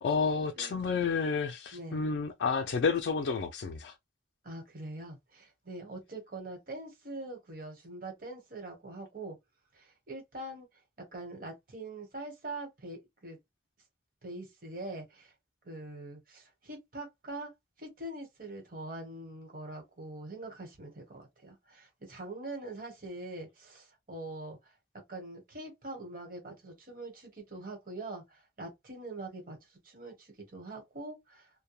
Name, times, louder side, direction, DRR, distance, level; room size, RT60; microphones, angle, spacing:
voice 1, 0.0-3.9, left 5 dB, 70° left, 0.3 m, -30 dB
voice 2, 0.5-0.9 1.7-2.0 4.4-9.4 9.7-10.7 11.1-13.4 14.2-15.3 15.6-17.5 17.8-24.6 25.1-31.5, right 2 dB, 50° right, 1.1 m, -43 dB
2.2 x 2.1 x 3.0 m
head